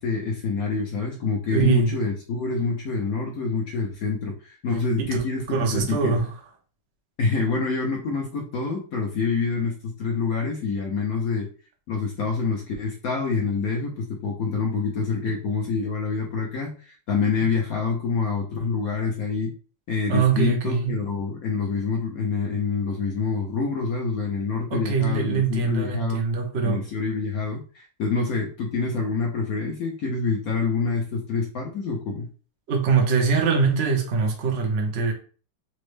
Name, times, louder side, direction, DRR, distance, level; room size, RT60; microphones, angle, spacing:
voice 1, 0.0-6.2 7.2-11.5 11.9-19.5 19.9-26.2 26.6-32.3, left 4 dB, 75° left, 0.8 m, -26 dB
voice 2, 1.5-2.0 5.1-5.2 5.5-6.3 15.3-15.4 20.1-20.9 24.7-26.8 32.7-35.1, right 5 dB, 85° right, 0.5 m, -23 dB
4.2 x 2.1 x 3.2 m
omnidirectional pair, 2.4 m